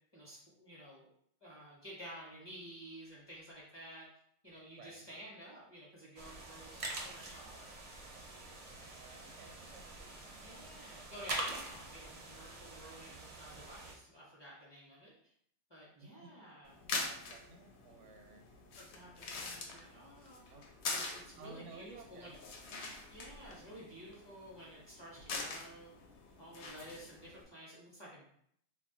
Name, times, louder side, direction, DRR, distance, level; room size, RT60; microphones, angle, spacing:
voice 1, 0.1-1.1 1.4-4.0 4.4-7.7 10.4-15.1 15.7-16.8 18.8-20.4 20.9-22.4 23.1-25.9 26.4-28.4, equal, 25° left, -6 dB, 0.6 m, -52 dB
voice 2, 4.7-5.2 9.0-11.8 16.0-16.6 17.0-18.5 20.5-20.7 21.4-22.3, right 3 dB, 85° right, 3 dB, 0.9 m, -56 dB
sound 1, 6.2-13.9, right 2 dB, 50° right, 0.4 m, -45 dB
sound 2, 16.7-27.4, left 3 dB, 70° left, 0.8 m, -44 dB
2.2 x 2.2 x 3.7 m, 0.68 s
omnidirectional pair, 1.2 m